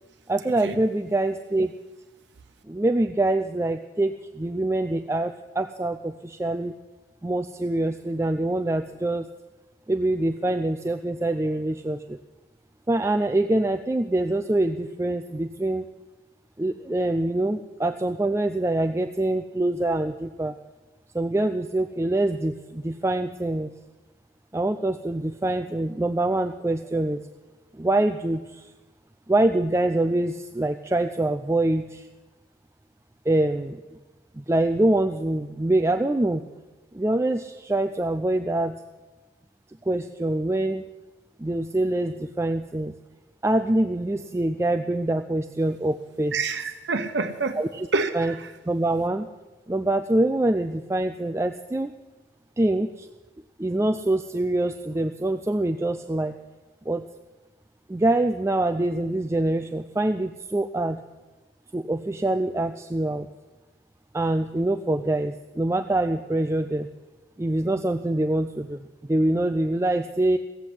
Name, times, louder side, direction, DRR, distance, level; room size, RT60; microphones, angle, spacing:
voice 1, 0.3-1.7 2.7-6.7 7.2-9.3 9.9-12.2 12.9-15.9 16.6-20.6 21.1-23.7 24.5-27.2 27.8-28.7 29.3-32.1 33.3-33.8 34.3-36.4 36.9-38.7 39.8-40.8 41.4-42.9 43.4-46.4 47.6-47.7 48.1-48.3 48.7-49.3 49.7-51.9 52.6-53.1 53.6-56.3 56.9-57.0 57.9-61.0 61.7-63.3 64.1-66.9 67.4-70.4, right 1 dB, 15° right, 6 dB, 0.4 m, -25 dB
voice 2, 46.3-47.6 47.9-48.5, right 3 dB, 80° right, 7 dB, 0.9 m, -27 dB
16.0 x 8.0 x 9.9 m, 1.2 s
head